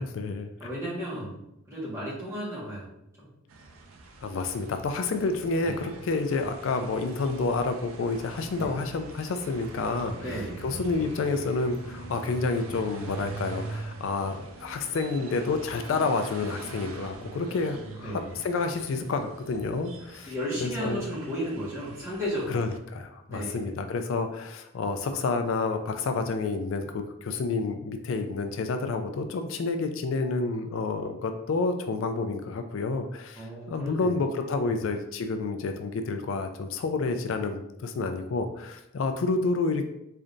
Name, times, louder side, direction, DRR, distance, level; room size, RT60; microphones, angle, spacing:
voice 1, 0.0-0.5 4.2-10.3 10.6-20.3 20.6-21.0 22.5-39.8, left 3 dB, 70° left, 7 dB, 0.4 m, -29 dB
voice 2, 0.6-1.4 1.7-2.9 3.2-3.3 5.6-5.8 8.5-8.8 10.2-10.6 18.0-18.3 20.2-22.6 23.3-23.7 33.4-34.3 34.6-34.8, equal, 15° right, -8 dB, 1.5 m, -34 dB
sound 1, 3.5-22.8, right 3 dB, 90° right, 0.5 m, -43 dB
3.8 x 3.3 x 2.6 m, 0.81 s
head